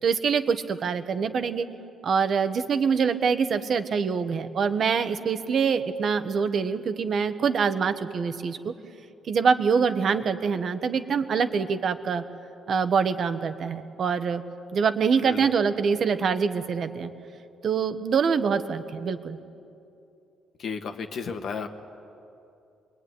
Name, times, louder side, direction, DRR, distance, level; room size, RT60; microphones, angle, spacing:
voice 1, 0.0-1.7 2.0-8.7 9.3-12.2 12.7-14.4 14.7-17.1 17.6-19.4, right 6 dB, 45° right, 10 dB, 1.4 m, -25 dB
voice 2, 20.6-21.7, left 5 dB, 55° left, 5 dB, 1.7 m, -33 dB
27.0 x 22.5 x 9.8 m, 2.6 s
cardioid pair, 145°, 0 cm